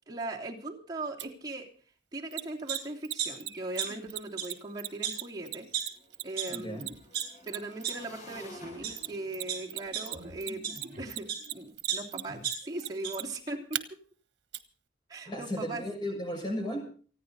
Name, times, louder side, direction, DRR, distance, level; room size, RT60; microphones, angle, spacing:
voice 1, 0.1-1.7 2.1-5.7 6.2-7.0 7.5-13.8 15.1-15.8, right 2 dB, 25° right, -3 dB, 3.1 m, -39 dB
Mechanisms, 1.2-1.3 2.3-8.2 9.0-9.8 10.0-13.8 14.5-14.6, right 13 dB, 80° right, 1.2 m, -36 dB
sound 1, 2.7-2.8 3.2-4.1 4.3-4.4 5.0-5.1 5.7-5.8 6.4-6.5 6.9-7.2 7.8-7.9 8.6-8.9 9.5-11.4 11.9-13.1 13.5-13.6, right 9 dB, 55° right, 5.6 m, -34 dB
Motorcycle / Engine, 4.1-4.2 4.5-11.6, left 1 dB, 45° left, 7.9 m, -53 dB
voice 2, 6.5-6.9 15.2-16.8, equal, 25° left, 2 dB, 6.6 m, -35 dB
29.0 x 9.8 x 4.1 m, 0.43 s
head